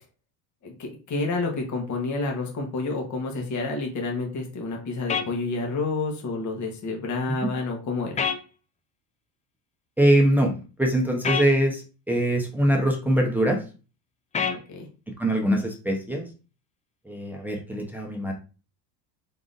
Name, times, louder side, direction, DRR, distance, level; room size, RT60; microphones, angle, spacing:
voice 1, 0.6-8.2 14.7-14.9, left 3 dB, 35° left, 1 dB, 1.3 m, -29 dB
sound 1, 5.1-5.3 8.2-8.4 11.2-11.5 14.3-14.6, left 6 dB, 15° left, 0.3 m, -25 dB
voice 2, 10.0-10.5 10.8-13.6 15.2-16.3 17.0-18.3, right 1 dB, 5° right, 0 dB, 0.9 m, -23 dB
3.8 x 3.6 x 2.6 m, 0.34 s
supercardioid pair, 95°, 49 cm